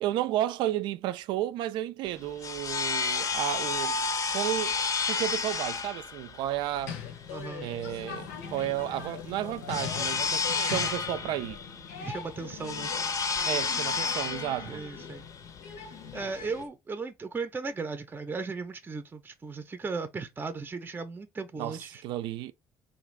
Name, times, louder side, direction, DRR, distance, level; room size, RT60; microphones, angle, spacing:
voice 1, 0.0-4.0 4.3-7.0 7.6-11.6 13.5-14.8 21.6-22.5, right 13 dB, 70° right, 0.4 m, -32 dB
sound 1, 2.1-16.6, left 4 dB, 40° left, 0.6 m, -32 dB
sound 2, 6.7-16.7, left 7 dB, 85° left, 0.7 m, -42 dB
voice 2, 7.3-7.7 12.0-12.9 14.6-15.2 16.1-22.0, right 4 dB, 25° right, 0.6 m, -36 dB
3.3 x 2.5 x 3.1 m
supercardioid pair, 75°, 8 cm